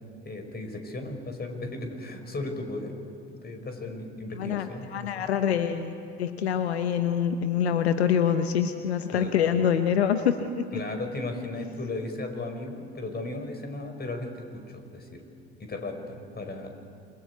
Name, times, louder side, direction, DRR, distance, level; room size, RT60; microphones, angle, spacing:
voice 1, 0.0-3.0 3.4-5.2 9.1-9.3 10.7-15.2 15.6-16.7, left 2 dB, 30° left, 5 dB, 5.3 m, -36 dB
voice 2, 4.4-10.8, left 8 dB, 85° left, 9 dB, 1.0 m, -25 dB
27.5 x 23.0 x 8.2 m, 2.4 s
hypercardioid pair, 60°, 31 cm